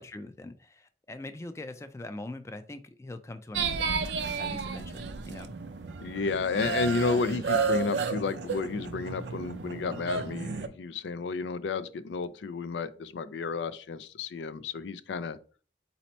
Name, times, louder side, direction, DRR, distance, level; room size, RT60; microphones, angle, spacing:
voice 1, 0.0-4.1 4.4-5.5, left 2 dB, 15° left, 0.3 m, -42 dB
sound 1, 3.5-10.7, right 5 dB, 85° right, 0.5 m, -32 dB
voice 2, 6.0-15.4, left 4 dB, 85° left, 0.4 m, -32 dB
4.1 x 2.8 x 4.3 m
head